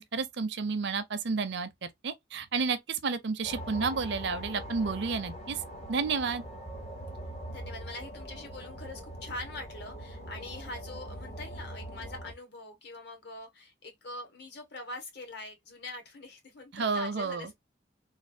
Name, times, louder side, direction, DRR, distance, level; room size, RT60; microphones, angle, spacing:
voice 1, 0.0-5.6 5.9-6.4 16.7-17.5, right 4 dB, 55° right, 0.5 m, -31 dB
sound 1, 3.4-12.3, right 1 dB, 30° left, 0.9 m, -42 dB
voice 2, 7.5-17.5, left 2 dB, 55° left, 1.2 m, -43 dB
3.2 x 2.4 x 2.6 m
head